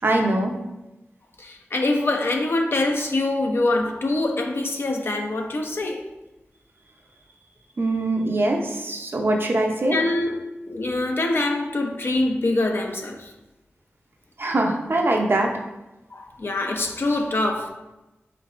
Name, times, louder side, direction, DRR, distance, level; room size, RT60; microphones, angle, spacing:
voice 1, 0.0-0.5 7.8-10.0 14.4-15.5, right 2 dB, 55° right, 0.6 m, -22 dB
voice 2, 1.4-6.0 9.9-10.4 10.7-13.3 16.1-17.7, left 2 dB, 60° left, 0.6 m, -24 dB
4.5 x 4.2 x 2.5 m
wide cardioid pair, 75°, 4 cm